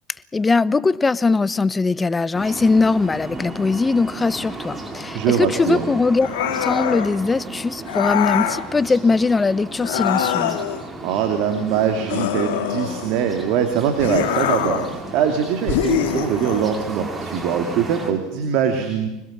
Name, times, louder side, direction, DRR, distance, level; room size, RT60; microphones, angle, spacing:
voice 1, 0.3-6.3 6.6-10.6, left 4 dB, 20° left, 19 dB, 0.9 m, -20 dB
sound 1, 2.3-18.1, right 2 dB, 25° right, 4.5 m, -34 dB
voice 2, 5.1-5.9 11.0-19.1, right 8 dB, 65° right, 6 dB, 2.8 m, -22 dB
sound 2, 6.2-7.1 7.9-8.6 9.8-10.8 12.1-13.2 14.0-14.9 15.7-16.7, left 10 dB, 75° left, 2.4 m, -23 dB
25.5 x 20.5 x 7.5 m, 0.98 s
hypercardioid pair, 80°, 0 cm